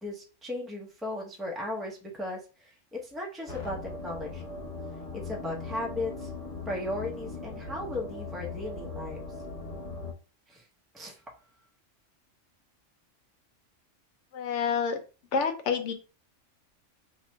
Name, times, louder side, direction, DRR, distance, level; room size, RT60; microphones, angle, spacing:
voice 1, 0.0-4.6 5.2-6.3 6.7-9.2 10.5-10.6 10.9-11.2, left 2 dB, ahead, -1 dB, 0.7 m, -36 dB
sound 1, 3.5-10.1, left 3 dB, 35° left, 1.1 m, -39 dB
voice 2, 14.3-15.0 15.3-15.9, left 6 dB, 70° left, 6 dB, 1.0 m, -28 dB
3.0 x 2.5 x 4.4 m, 0.34 s
omnidirectional pair, 1.3 m